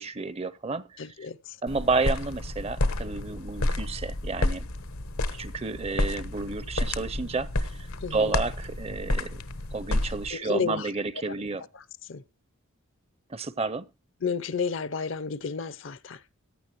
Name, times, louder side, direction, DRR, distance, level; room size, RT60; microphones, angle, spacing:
voice 1, 0.0-1.0 1.6-4.7 5.3-9.4 9.7-11.7 13.3-13.9, right 3 dB, 30° right, 0.5 m, -31 dB
voice 2, 1.0-1.6 8.0-8.4 10.3-10.9 12.1-12.2 14.2-16.2, left 5 dB, 60° left, 0.6 m, -31 dB
sound 1, 1.7-10.3, left 2 dB, 85° left, 1.1 m, -30 dB
15.5 x 10.0 x 3.0 m
head